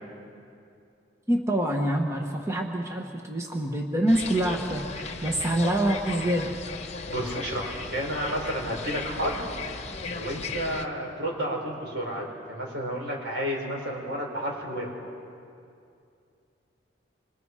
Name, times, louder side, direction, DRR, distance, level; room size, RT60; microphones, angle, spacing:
voice 1, 1.3-6.5, right 1 dB, 15° right, 1 dB, 1.3 m, -26 dB
sound 1, 4.1-10.9, left 4 dB, 35° left, 1.2 m, -36 dB
voice 2, 7.1-9.4 10.1-14.9, equal, 75° right, -1 dB, 5.7 m, -31 dB
27.0 x 26.5 x 4.9 m, 2.5 s
head